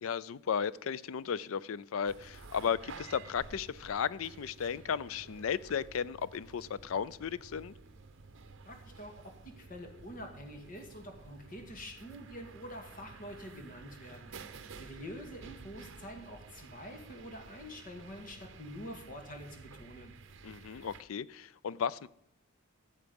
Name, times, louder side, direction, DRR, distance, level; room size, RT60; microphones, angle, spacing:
voice 1, 0.0-7.7 20.4-22.1, left 7 dB, 70° left, 0.4 m, -35 dB
sound 1, 2.1-21.0, right 4 dB, 60° right, 0.8 m, -52 dB
voice 2, 8.7-14.3 14.7-20.1, equal, 40° left, 1.9 m, -46 dB
14.0 x 7.3 x 5.2 m
head